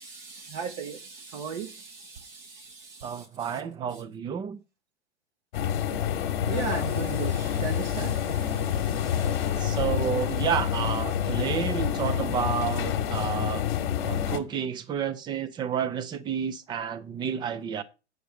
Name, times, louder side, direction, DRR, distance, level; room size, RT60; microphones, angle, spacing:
voice 1, 0.0-3.5 6.5-9.8, right 7 dB, 40° right, 1.0 m, -38 dB
voice 2, 3.0-4.6 9.6-13.7 14.0-17.8, right 8 dB, 15° right, 0.5 m, -30 dB
sound 1, 5.5-14.4, left 9 dB, 45° left, 1.3 m, -28 dB
8.9 x 6.4 x 4.9 m
figure-of-eight pair, 105°, 34 cm